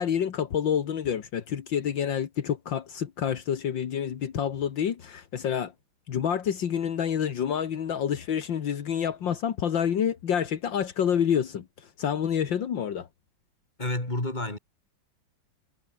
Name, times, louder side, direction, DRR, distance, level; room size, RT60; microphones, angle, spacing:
voice 1, 0.0-5.7 6.1-13.1, left 8 dB, 75° left, 2.2 m, -28 dB
voice 2, 13.8-14.6, left 2 dB, 20° left, 4.7 m, -29 dB
omnidirectional pair, 2.1 m